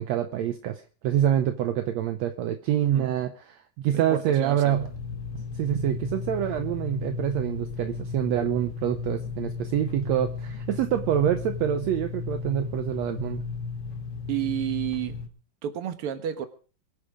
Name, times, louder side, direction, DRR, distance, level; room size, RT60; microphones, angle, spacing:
voice 1, 0.0-4.9 5.5-13.4, right 10 dB, 75° right, 8 dB, 1.6 m, -26 dB
voice 2, 2.7-3.1 3.9-4.7 14.3-15.2 15.6-16.5, right 11 dB, 55° right, 9 dB, 1.7 m, -31 dB
sound 1, 4.7-15.3, left 5 dB, 45° left, 2.4 m, -35 dB
23.0 x 8.3 x 5.0 m, 0.40 s
omnidirectional pair, 4.0 m